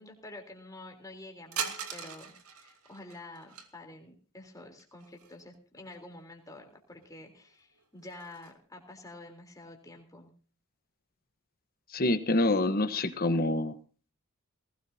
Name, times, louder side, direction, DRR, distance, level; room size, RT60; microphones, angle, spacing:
voice 1, 0.0-2.3 2.6-10.3, left 2 dB, 15° left, 2 dB, 3.6 m, -48 dB
sound 1, 1.5-3.7 4.8-5.6 5.9-6.0 6.9-7.0 7.5-8.5, right 7 dB, 90° right, 2.4 m, -40 dB
voice 2, 11.9-13.7, left 2 dB, 40° left, 10 dB, 1.2 m, -26 dB
19.5 x 17.5 x 2.8 m, 0.38 s
head